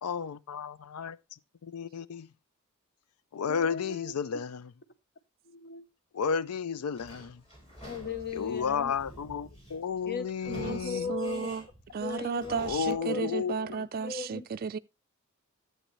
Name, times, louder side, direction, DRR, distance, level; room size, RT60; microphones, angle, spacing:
voice 1, 0.0-2.3 3.3-4.7 6.1-7.4 8.3-11.1 12.6-13.9, left 6 dB, 90° left, 0.4 m, -33 dB
voice 2, 3.5-4.1 5.4-5.9 7.8-8.9 10.1-11.5 12.0-12.6 12.9-13.3 14.0-14.5, left 5 dB, 45° left, 0.8 m, -37 dB
Sliding door / Squeak, 6.9-13.0, right 1 dB, 30° left, 4.0 m, -49 dB
voice 3, 10.5-10.8 11.1-11.6 11.9-14.8, right 5 dB, 45° right, 0.4 m, -33 dB
11.5 x 7.8 x 3.1 m
head